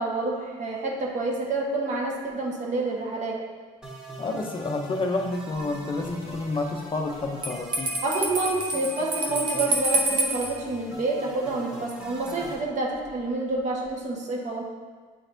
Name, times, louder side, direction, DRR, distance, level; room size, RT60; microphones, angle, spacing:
voice 1, 0.0-3.4 8.0-14.7, right 2 dB, 45° right, -2 dB, 1.3 m, -28 dB
sound 1, 3.8-12.5, right 1 dB, 5° right, 1.3 m, -42 dB
voice 2, 4.2-8.0, left 2 dB, 30° left, 2 dB, 0.6 m, -29 dB
Bell, 7.4-10.5, right 2 dB, 30° right, 0.9 m, -28 dB
8.8 x 4.0 x 2.6 m, 1.5 s
cardioid pair, 110°, 17 cm